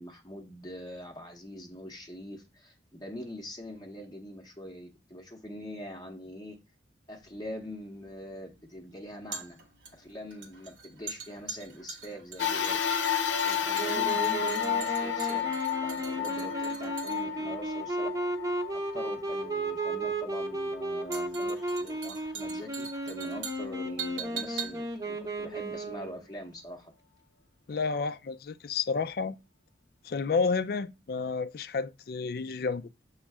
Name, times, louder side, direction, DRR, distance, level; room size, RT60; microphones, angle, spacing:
voice 1, 0.0-6.6 7.1-9.6 9.9-12.8 13.4-18.1 18.7-26.9, equal, 20° left, 0.7 m, -43 dB
sound 1, 7.2-26.4 26.7-26.8, right 6 dB, 85° right, 1.5 m, -44 dB
sound 2, 12.4-21.0 21.6-21.7 22.8-22.9, left 8 dB, 85° left, 0.7 m, -32 dB
Wind instrument woodwind instrument, 13.8-26.2, right 1 dB, 20° right, 0.7 m, -34 dB
voice 2, 27.7-29.4 30.0-32.8, left 4 dB, 50° left, 0.4 m, -30 dB
7.2 x 3.2 x 4.7 m
head